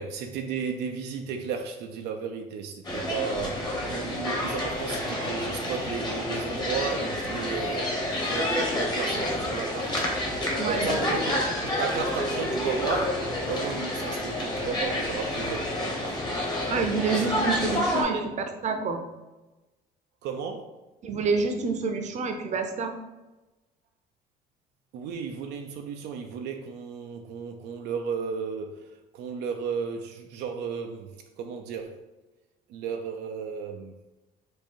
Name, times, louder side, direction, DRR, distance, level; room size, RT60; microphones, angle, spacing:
voice 1, 0.0-9.9 10.6-11.4 11.8-15.7 18.0-18.2 20.2-20.8 24.9-32.1 32.7-34.0, right 6 dB, 80° right, 4 dB, 0.5 m, -34 dB
sound 1, 2.8-18.0, left 1 dB, 25° left, 1.3 m, -29 dB
voice 2, 10.6-11.1 16.7-18.2 18.6-19.0 21.0-22.9, right 4 dB, 45° right, 5 dB, 0.7 m, -28 dB
4.5 x 2.6 x 4.5 m, 1.1 s
cardioid pair, 110°, 17 cm